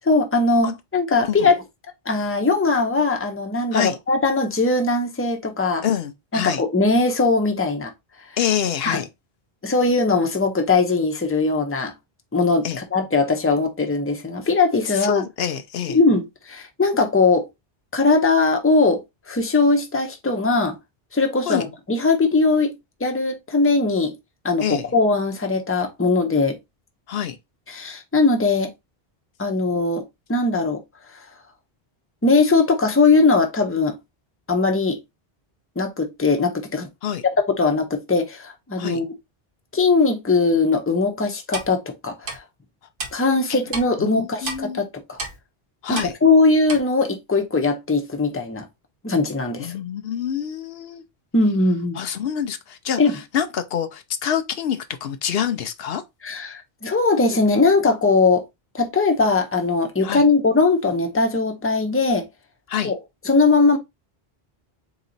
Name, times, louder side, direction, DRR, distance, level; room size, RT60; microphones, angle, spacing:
voice 1, 0.1-1.6 2.1-5.8 6.3-7.9 8.8-9.0 9.6-11.9 12.3-15.2 15.9-17.5 17.9-20.8 21.1-24.1 24.4-26.6 27.7-28.7 29.4-30.0 30.3-30.8 32.2-34.0 34.5-35.0 35.8-36.9 37.6-39.1 39.7-42.4 43.1-45.2 45.9-48.7 49.0-49.7 51.3-52.0 53.0-53.1 56.2-58.4 58.7-62.3 62.8-63.0 63.2-63.8, left 3 dB, 15° left, 0.7 m, -20 dB
voice 2, 5.8-6.6 8.4-9.1 12.6-12.8 14.9-16.0 21.5-21.7 24.6-24.9 27.1-27.4 37.0-37.2 38.8-39.0 43.5-43.6 44.0-44.8 45.8-46.1 49.6-51.0 52.0-53.0 53.3-56.0 60.0-60.2 62.7-62.9, left 9 dB, 75° left, 0.8 m, -26 dB
Clock, 41.5-41.7 42.3-42.4 43.0-43.1 43.7-43.9 44.5-44.6 45.2-45.4 46.0-46.1 46.7-46.8, right 3 dB, 60° right, 1.1 m, -29 dB
4.0 x 2.9 x 3.9 m
omnidirectional pair, 1.0 m